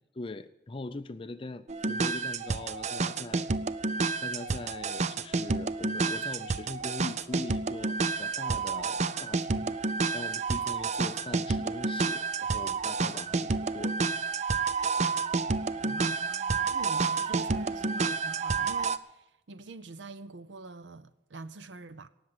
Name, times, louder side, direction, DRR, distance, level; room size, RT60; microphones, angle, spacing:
voice 1, 0.2-3.5 4.2-9.8 10.1-14.0, left 2 dB, 30° left, 0.5 m, -41 dB
sound 1, 1.7-19.0, right 4 dB, 40° right, 0.5 m, -30 dB
voice 2, 15.7-22.1, right 3 dB, 85° right, 0.7 m, -45 dB
18.5 x 7.3 x 9.7 m
head